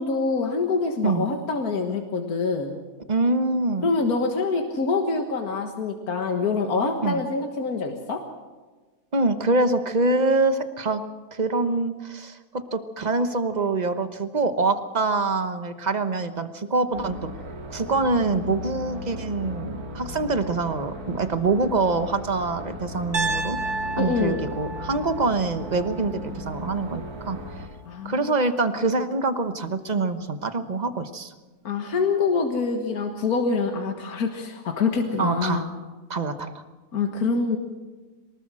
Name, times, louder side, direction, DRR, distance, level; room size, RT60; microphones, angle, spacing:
voice 1, 0.0-2.8 3.8-8.2 24.0-24.4 27.9-28.3 31.6-35.7 36.9-37.6, left 4 dB, 75° left, 4 dB, 2.0 m, -25 dB
voice 2, 3.1-3.9 7.0-7.2 9.1-11.0 11.3-17.3 17.7-23.6 24.0-27.5 28.0-31.3 35.2-35.7 36.1-36.6, right 3 dB, 30° right, 10 dB, 1.1 m, -25 dB
sound 1, 16.9-27.7, left 1 dB, 75° right, 3.1 m, -36 dB
Piano, 23.1-27.2, right 3 dB, 90° right, 1.8 m, -32 dB
23.5 x 19.5 x 6.3 m, 1.3 s
omnidirectional pair, 1.6 m